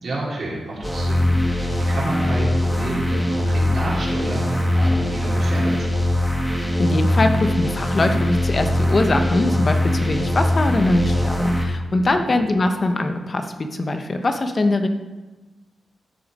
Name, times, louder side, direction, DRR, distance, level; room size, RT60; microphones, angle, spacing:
voice 1, 0.0-6.1 11.9-12.3, right 2 dB, 50° right, -6 dB, 3.7 m, -30 dB
sound 1, 0.8-11.6, left 1 dB, 5° left, 1.6 m, -21 dB
voice 2, 6.5-14.9, left 2 dB, 30° left, 6 dB, 1.0 m, -22 dB
13.5 x 6.6 x 5.4 m, 1.2 s
wide cardioid pair, 150°, 0 cm